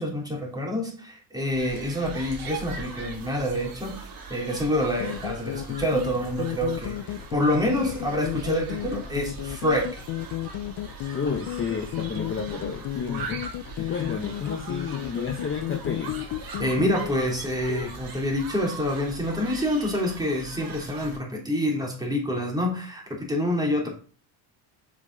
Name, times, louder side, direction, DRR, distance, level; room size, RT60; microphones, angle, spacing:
voice 1, 0.0-4.0 4.3-7.0 7.3-10.0 16.5-23.9, left 1 dB, 10° right, -1 dB, 3.2 m, -27 dB
sound 1, 1.5-21.2, right 5 dB, 50° right, 2.4 m, -40 dB
sound 2, 5.0-17.9, left 14 dB, 50° left, 0.5 m, -33 dB
voice 2, 11.1-13.4 13.8-16.2 23.8-23.9, left 5 dB, 25° left, 4 dB, 1.0 m, -31 dB
7.4 x 5.2 x 4.0 m, 0.40 s
supercardioid pair, 90°, 46 cm